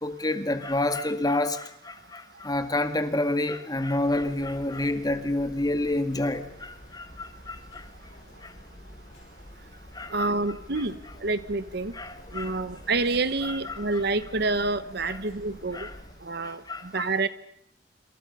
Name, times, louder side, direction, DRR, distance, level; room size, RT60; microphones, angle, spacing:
voice 1, 0.0-7.9 8.4-8.5 9.9-10.4 10.8-10.9 11.9-12.6 13.4-14.0 15.0-15.2 15.7-15.9 16.4-17.1, left 2 dB, 20° left, 1.9 m, -29 dB
sound 1, 3.9-16.1, left 1 dB, 40° left, 6.3 m, -48 dB
voice 2, 10.1-11.9 12.3-15.9 16.2-16.6 16.9-17.3, right 3 dB, 60° right, 1.1 m, -28 dB
27.0 x 26.5 x 5.6 m
head